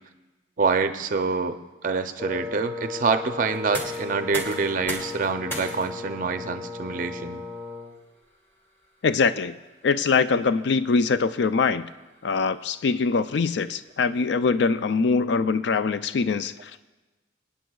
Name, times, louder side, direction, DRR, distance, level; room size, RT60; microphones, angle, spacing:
voice 1, 0.6-1.6 1.8-7.4, right 4 dB, 45° right, 9 dB, 0.5 m, -26 dB
Wind instrument woodwind instrument, 2.2-8.0, left 4 dB, 5° right, 1.2 m, -36 dB
sound 1, 3.5-15.3, equal, 10° left, 1.7 m, -42 dB
voice 2, 9.0-9.5 9.8-11.8 12.2-16.7, left 4 dB, 65° left, 13 dB, 0.4 m, -23 dB
24.0 x 9.0 x 2.3 m, 1.2 s
head